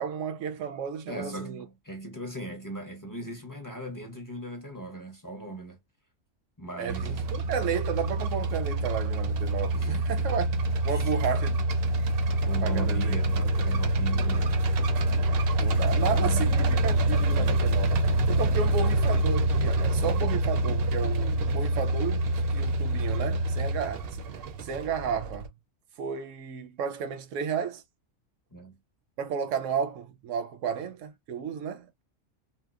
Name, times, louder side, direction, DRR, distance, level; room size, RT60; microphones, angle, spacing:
voice 1, 0.0-1.6 6.8-11.6 12.6-13.8 15.6-18.0 18.3-24.2 24.6-25.5 26.0-27.8 29.2-32.0, right 7 dB, 80° right, 1.0 m, -33 dB
voice 2, 1.1-5.8 6.6-7.2 9.7-10.1 10.9-11.0 12.2-14.6 15.8-16.5 28.5-28.8, right 2 dB, 20° left, 0.6 m, -39 dB
sound 1, 6.9-25.5, right 1 dB, 60° right, 0.7 m, -26 dB
2.8 x 2.1 x 2.3 m
omnidirectional pair, 1.3 m